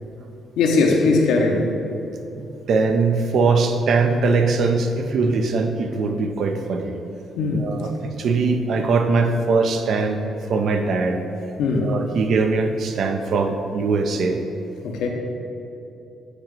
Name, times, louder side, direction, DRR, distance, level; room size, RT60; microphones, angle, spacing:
voice 1, 0.6-1.7 7.4-7.7 11.6-11.9 14.8-15.1, left 3 dB, 85° left, 1 dB, 0.8 m, -19 dB
voice 2, 2.7-6.9 7.5-10.2 10.5-11.2 11.7-14.4, right 4 dB, 65° right, 5 dB, 0.6 m, -21 dB
8.3 x 3.0 x 5.2 m, 2.7 s
cardioid pair, 90°, 0 cm